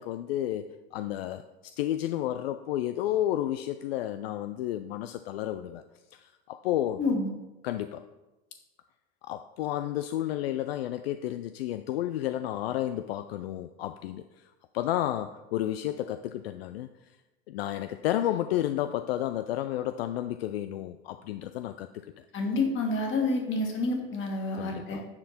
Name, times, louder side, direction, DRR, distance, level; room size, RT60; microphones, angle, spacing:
voice 1, 0.0-5.8 6.1-7.0 7.6-8.0 9.2-14.4 14.7-16.9 17.5-22.1 24.5-25.1, left 12 dB, 75° left, 10 dB, 0.4 m, -31 dB
voice 2, 7.0-7.3 22.3-25.0, left 2 dB, 40° left, 1 dB, 2.2 m, -28 dB
9.6 x 4.5 x 4.3 m, 1.1 s
hypercardioid pair, 85°, 31 cm